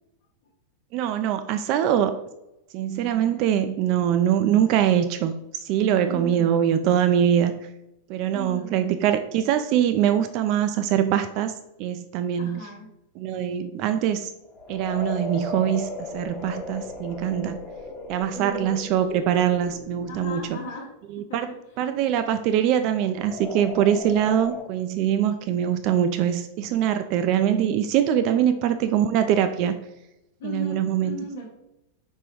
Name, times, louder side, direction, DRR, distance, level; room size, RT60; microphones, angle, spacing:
voice 1, 0.9-2.1 2.7-7.5 8.1-11.5 11.8-12.6 13.2-14.3 14.7-15.9 16.1-17.6 18.1-20.6 21.1-21.5 21.8-29.8 30.4-31.1, right 10 dB, 40° right, 9 dB, 0.3 m, -23 dB
voice 2, 6.1-6.5 8.3-8.8 12.4-12.9 18.3-18.9 20.1-21.8 25.2-25.5 28.3-29.0 30.4-31.5, left 1 dB, 55° left, -4 dB, 0.9 m, -38 dB
sound 1, 14.4-20.6 23.0-24.6, left 3 dB, 25° left, 0.8 m, -36 dB
4.9 x 3.6 x 3.0 m, 0.89 s
figure-of-eight pair, 90°, 0 cm